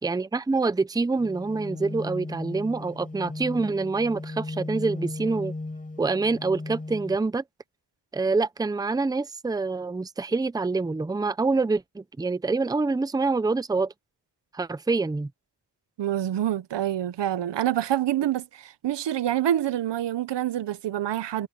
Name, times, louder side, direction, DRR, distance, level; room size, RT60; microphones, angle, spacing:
voice 1, 0.0-5.5 6.0-7.4 8.1-13.9 14.5-15.3, right 3 dB, 10° right, 0.6 m, -26 dB
sound 1, 1.2-7.2, left 2 dB, 20° left, 7.4 m, -36 dB
voice 2, 16.0-21.5, right 12 dB, 85° right, 0.9 m, -26 dB
wide cardioid pair, 140°, 41 cm